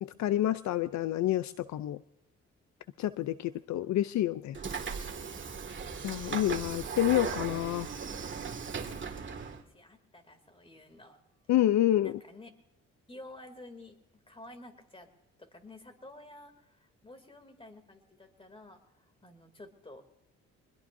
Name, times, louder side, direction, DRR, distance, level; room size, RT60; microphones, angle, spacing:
voice 1, 0.0-2.0 3.0-4.6 6.0-7.9 11.5-12.2, left 13 dB, 70° left, 14 dB, 0.5 m, -28 dB
voice 2, 3.1-3.7 5.7-6.4 9.2-11.2 12.0-12.5 13.1-14.0 14.3-15.1 15.4-20.0, left 2 dB, 20° left, 7 dB, 2.8 m, -52 dB
Train / Sliding door, 4.5-9.6, right 5 dB, 40° right, 2.0 m, -37 dB
24.0 x 21.0 x 2.7 m, 0.90 s
cardioid pair, 90°, 30 cm